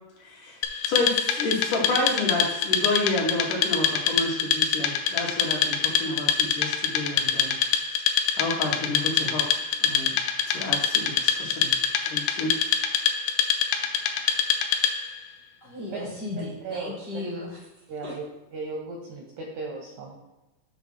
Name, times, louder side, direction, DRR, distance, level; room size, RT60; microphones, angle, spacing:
voice 1, 0.2-7.6 8.4-9.4 9.8-10.1 10.5-11.8 12.1-12.5, left 2 dB, 65° left, -3 dB, 2.3 m, -30 dB
Wood, 0.6-15.2, left 8 dB, 85° left, 1.9 m, -25 dB
voice 2, 15.6-17.6 18.0-18.2, left 2 dB, 50° left, -7 dB, 1.3 m, -35 dB
voice 3, 17.9-18.2 18.5-20.2, right 3 dB, 80° right, 0 dB, 1.7 m, -36 dB
7.1 x 3.2 x 5.9 m, 1.0 s
omnidirectional pair, 4.4 m